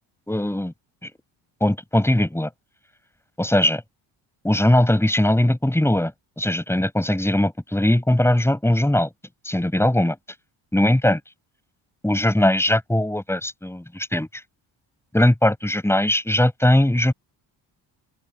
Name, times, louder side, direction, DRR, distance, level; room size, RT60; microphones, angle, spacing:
voice 1, 0.3-0.7 1.0-1.1 1.6-2.5 3.4-3.8 4.4-9.1 9.4-10.2 10.7-11.2 12.0-14.3 15.1-17.1, left 1 dB, 5° left, 6.9 m, -20 dB
open air
cardioid pair, 100°, 43 cm